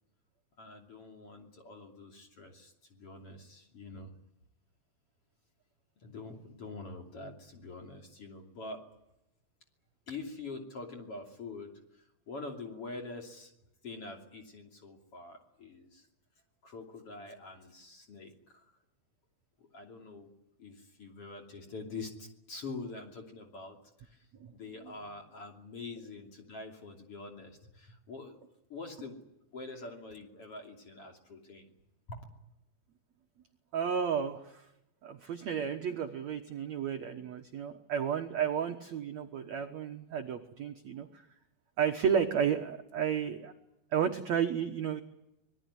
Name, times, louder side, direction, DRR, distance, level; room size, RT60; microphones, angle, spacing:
voice 1, 0.6-4.1 6.0-8.8 10.1-13.5 13.8-16.1 16.6-18.6 19.6-20.3 20.6-24.3 24.5-29.2 29.5-31.7 32.1-32.2, left 3 dB, 35° left, 3 dB, 3.3 m, -45 dB
voice 2, 33.7-34.6 35.0-41.1 41.8-43.5 43.9-45.0, right 8 dB, 65° right, 4 dB, 1.8 m, -32 dB
25.5 x 20.0 x 9.8 m, 0.87 s
omnidirectional pair, 5.0 m